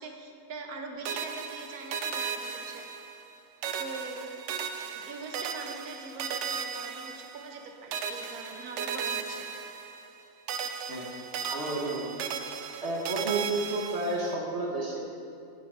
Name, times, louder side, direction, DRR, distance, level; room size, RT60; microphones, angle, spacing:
voice 1, 0.0-2.9 3.8-4.2 4.9-9.4, right 4 dB, 85° right, 3 dB, 1.4 m, -42 dB
sound 1, 1.0-3.3 3.6-7.6 7.9-10.2 10.5-14.3, right 6 dB, 65° right, 0.7 m, -36 dB
voice 2, 10.9-12.2 12.8-15.0, right 2 dB, 50° right, -2 dB, 1.4 m, -31 dB
10.0 x 5.6 x 5.5 m, 2.4 s
omnidirectional pair, 1.6 m